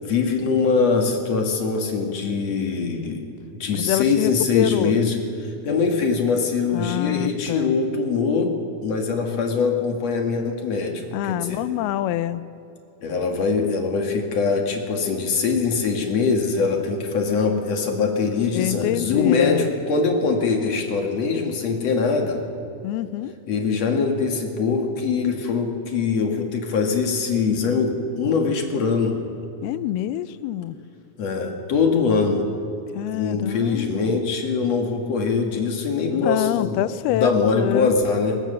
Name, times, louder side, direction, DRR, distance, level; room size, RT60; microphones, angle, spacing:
voice 1, 0.0-3.3 3.6-8.5 8.8-11.6 13.0-22.4 23.5-29.2 31.2-32.5 33.1-36.8 37.1-38.4, left 4 dB, 50° left, 3 dB, 2.4 m, -22 dB
voice 2, 3.7-4.9 6.7-7.7 11.1-12.4 18.6-19.7 22.8-23.3 29.6-30.8 32.9-34.2 36.1-37.9, left 13 dB, 85° left, 15 dB, 2.6 m, -26 dB
21.5 x 19.5 x 6.7 m, 2.8 s
omnidirectional pair, 4.4 m